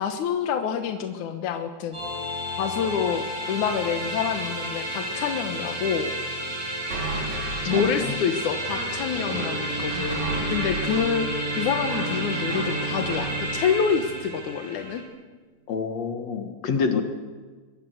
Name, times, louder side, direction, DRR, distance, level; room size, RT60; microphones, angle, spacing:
voice 1, 0.0-2.0 2.6-6.1 7.7-11.3 11.6-15.0 17.0-17.1, left 7 dB, 80° left, 7 dB, 2.7 m, -27 dB
sound 1, 1.9-15.0, equal, 25° right, 8.5 m, -32 dB
sound 2, 6.9-13.3, right 2 dB, 75° right, 4.9 m, -34 dB
voice 2, 7.6-8.2 15.7-17.0, left 5 dB, 60° left, 6 dB, 2.7 m, -27 dB
Bowed string instrument, 9.1-15.0, right 2 dB, 15° left, 2.7 m, -34 dB
24.0 x 22.0 x 8.1 m, 1.4 s
omnidirectional pair, 3.4 m